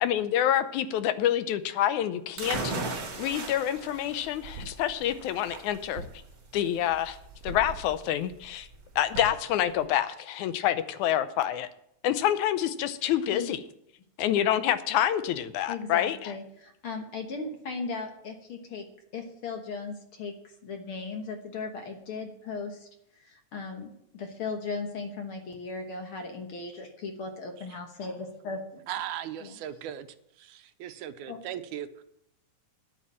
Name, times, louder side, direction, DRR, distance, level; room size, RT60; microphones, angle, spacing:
voice 1, 0.0-6.0 6.5-7.2 7.4-8.7 9.0-11.7 12.0-13.6 14.2-16.4, left 11 dB, 80° left, 12 dB, 2.1 m, -27 dB
sound 1, 2.4-9.9, right 3 dB, 40° right, 1.5 m, -38 dB
Thump thud, 4.5-4.9 6.0-6.3 7.5-7.9 9.1-9.5, right 2 dB, 65° right, 2.0 m, -41 dB
voice 2, 13.0-13.5 15.7-18.9 19.1-20.4 20.6-22.9 23.2-28.8 29.4-29.5 31.3-31.4, left 4 dB, 55° left, 4 dB, 1.7 m, -37 dB
voice 3, 28.9-30.1 30.4-32.0, right 11 dB, 80° right, 10 dB, 2.2 m, -38 dB
10.5 x 8.4 x 7.5 m, 0.77 s
omnidirectional pair, 3.5 m